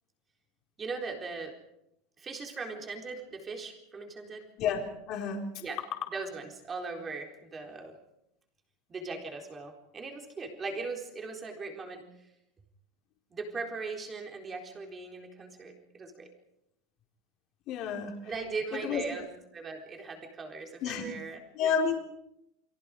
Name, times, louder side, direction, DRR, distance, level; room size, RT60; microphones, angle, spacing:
voice 1, 0.8-1.5 2.2-4.4 5.6-5.8 6.1-8.0 8.9-12.0 13.3-16.3 18.3-19.3 19.5-21.8, right 4 dB, 15° right, 2 dB, 4.0 m, -39 dB
voice 2, 5.1-5.4 17.7-18.1 18.7-19.0 20.8-21.0 21.5-21.9, left 7 dB, 40° left, 1 dB, 4.4 m, -29 dB
29.5 x 24.0 x 5.0 m, 0.82 s
supercardioid pair, 170°, 0 cm